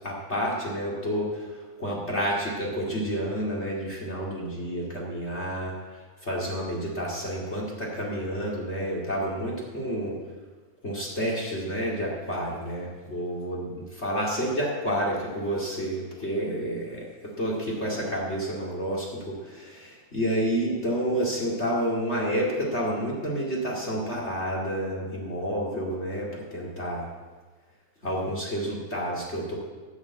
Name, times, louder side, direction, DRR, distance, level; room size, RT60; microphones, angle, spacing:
voice 1, 0.0-5.7 6.2-10.2 10.8-13.7 14.0-17.1 17.4-27.1 28.0-29.5, equal, 30° left, -3 dB, 1.2 m, -29 dB
14.0 x 6.4 x 8.5 m, 1.4 s
omnidirectional pair, 5.1 m